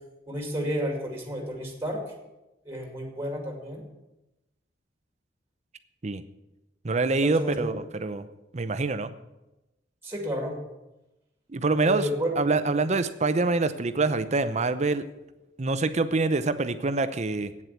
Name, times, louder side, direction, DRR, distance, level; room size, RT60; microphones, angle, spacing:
voice 1, 0.3-2.0 2.6-3.8 7.2-7.8 10.0-10.6 11.8-12.4, equal, 15° right, 1 dB, 2.4 m, -31 dB
voice 2, 6.8-8.3 8.5-9.1 11.5-12.1 12.4-15.0 15.6-17.5, right 3 dB, 40° right, 12 dB, 0.7 m, -25 dB
8.7 x 7.7 x 8.2 m, 0.98 s
head